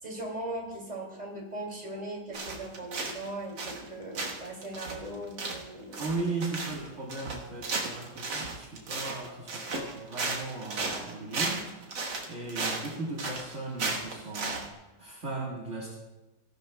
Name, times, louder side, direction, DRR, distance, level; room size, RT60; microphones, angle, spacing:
voice 1, 0.0-6.1, right 1 dB, 25° right, -1 dB, 2.6 m, -39 dB
sound 1, 2.3-3.3 3.6-3.9 4.2-14.7, right 3 dB, 80° right, 2.0 m, -34 dB
voice 2, 6.0-11.9 12.3-14.7 15.0-15.9, right 3 dB, 45° right, -3 dB, 1.8 m, -37 dB
17.5 x 12.0 x 2.2 m, 1.1 s
omnidirectional pair, 1.9 m